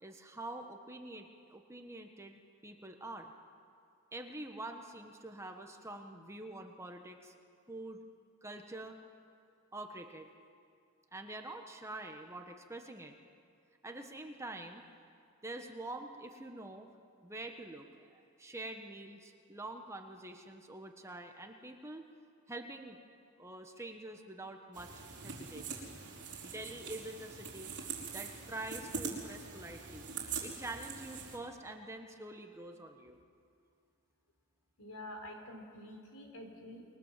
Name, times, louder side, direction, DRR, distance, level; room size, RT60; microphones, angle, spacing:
voice 1, 0.0-3.3 4.1-7.3 7.7-8.0 8.4-9.0 9.7-10.3 11.1-13.2 13.8-14.8 15.4-16.9 17.2-22.0 22.5-23.0 23.4-25.9 26.4-27.7 28.1-30.1 30.4-33.2, right 2 dB, 15° right, 4 dB, 1.4 m, -46 dB
sound 1, 24.7-31.4, right 5 dB, 50° right, 4.9 m, -43 dB
voice 2, 34.8-36.8, left 1 dB, 75° left, 3 dB, 4.6 m, -47 dB
29.0 x 22.0 x 7.5 m, 2.4 s
head